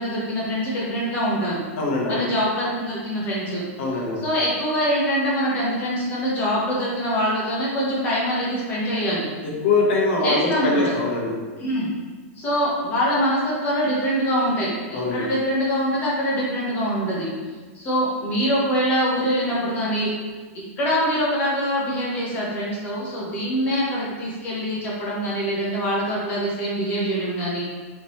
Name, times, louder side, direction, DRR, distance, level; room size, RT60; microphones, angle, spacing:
voice 1, 0.0-1.6 2.1-3.7 4.2-9.3 10.2-10.9 11.6-11.9 12.4-17.3 17.7-20.1 20.8-27.7, equal, 20° left, -6 dB, 1.1 m, -24 dB
voice 2, 1.8-2.2 3.8-4.2 9.4-11.4 14.9-15.3, left 3 dB, 50° left, -2 dB, 1.2 m, -22 dB
4.2 x 3.8 x 3.1 m, 1.4 s
supercardioid pair, 165°, 8 cm